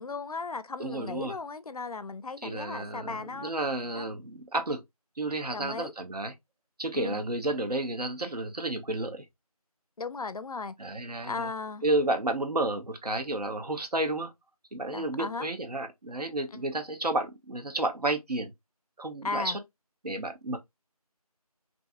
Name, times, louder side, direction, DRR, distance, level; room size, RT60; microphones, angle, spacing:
voice 1, 0.0-3.5 3.9-4.1 5.5-5.9 6.9-7.2 10.0-10.7 11.3-11.8 14.9-15.5 19.2-19.6, left 4 dB, 70° left, 0.4 m, -36 dB
voice 2, 0.8-1.4 2.4-4.8 5.2-6.3 6.8-9.2 10.8-11.5 11.8-14.3 14.7-18.5 19.0-19.6 20.0-20.6, right 2 dB, 85° right, 0.7 m, -31 dB
2.6 x 2.4 x 2.4 m
figure-of-eight pair, 175°, 20 cm